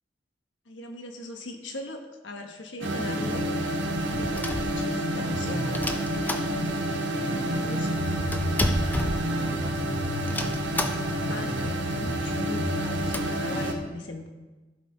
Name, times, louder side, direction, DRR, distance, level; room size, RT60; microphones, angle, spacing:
voice 1, 0.7-3.5 4.2-8.6 10.3-14.3, left 2 dB, 85° left, 4 dB, 1.2 m, -39 dB
sound 1, 2.8-13.7, right 1 dB, 80° right, 1.3 m, -28 dB
sound 2, 3.8-5.2 5.7-7.0 7.3-7.4 7.5-9.8 10.3-11.3 11.7-11.8 12.0-12.1 12.6-13.2, left 1 dB, 10° left, 0.6 m, -32 dB
15.0 x 5.8 x 3.9 m, 1.2 s
head